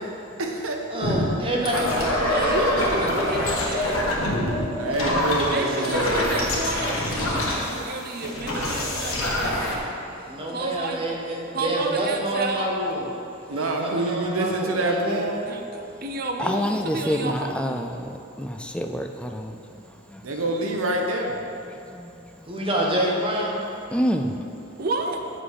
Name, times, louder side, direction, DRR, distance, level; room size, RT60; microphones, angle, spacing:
voice 1, 0.4-0.8 4.8-6.4 13.5-15.4 20.2-21.3, right 2 dB, 85° right, 2 dB, 1.0 m, -26 dB
voice 2, 0.9-3.1 10.3-13.0 13.5-15.2 22.5-23.6, right 1 dB, 25° right, -3 dB, 1.2 m, -27 dB
sound 1, 1.0-9.8, left 1 dB, 80° left, 1.4 m, -25 dB
voice 3, 1.6-4.0 5.4-11.0 11.5-12.7 15.5-18.0 20.2-20.6 24.8-25.2, right 2 dB, 45° right, 3 dB, 0.7 m, -31 dB
voice 4, 16.5-17.9 18.4-19.5 23.9-24.3, equal, 5° left, 4 dB, 0.3 m, -26 dB
7.8 x 6.1 x 4.8 m, 2.7 s
head